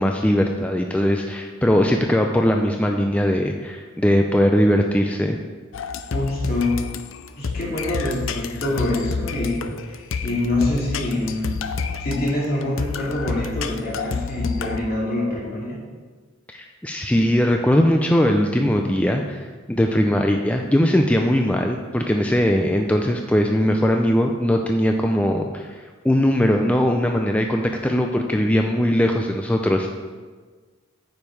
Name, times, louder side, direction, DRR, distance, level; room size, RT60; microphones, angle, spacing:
voice 1, 0.0-5.4 16.5-25.8 26.0-29.9, equal, 5° left, 3 dB, 0.4 m, -20 dB
sound 1, 5.7-14.8, left 5 dB, 85° left, 0.5 m, -29 dB
voice 2, 6.1-6.9 7.4-11.6 12.0-15.8, left 1 dB, 50° left, -4 dB, 2.4 m, -25 dB
9.1 x 5.3 x 4.6 m, 1.4 s
head